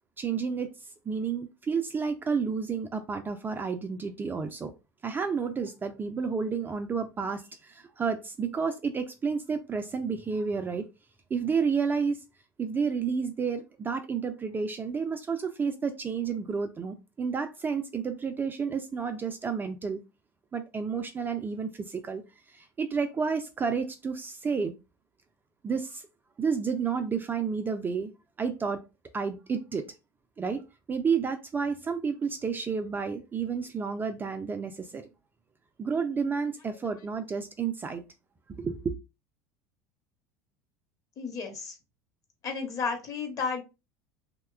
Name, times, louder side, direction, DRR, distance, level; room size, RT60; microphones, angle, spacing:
voice 1, 0.2-0.7 1.1-4.7 5.0-10.8 11.3-12.2 12.6-20.0 20.5-22.2 22.5-24.7 25.6-26.0 26.4-28.1 28.4-28.8 29.1-29.9 30.4-30.6 30.9-35.0 35.8-38.0 38.6-38.9, right 5 dB, 20° right, 0.4 m, -30 dB
voice 2, 41.2-41.8 42.4-43.6, left 5 dB, 35° left, 0.9 m, -32 dB
2.9 x 2.2 x 2.3 m
figure-of-eight pair, 75°, 10 cm